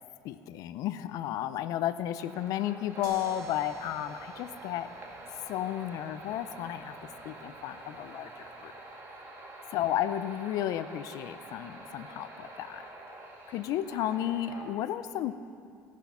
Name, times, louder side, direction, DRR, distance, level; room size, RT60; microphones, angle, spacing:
voice 1, 0.2-4.9 5.5-8.7 9.7-12.8 13.5-15.3, left 12 dB, 70° left, 13 dB, 0.5 m, -33 dB
sound 1, 2.1-14.6, right 2 dB, 40° right, 2.2 m, -47 dB
sound 2, 3.0-8.8, right 5 dB, 75° right, 1.3 m, -53 dB
18.0 x 6.2 x 5.6 m, 2.4 s
cardioid pair, 105°, 6 cm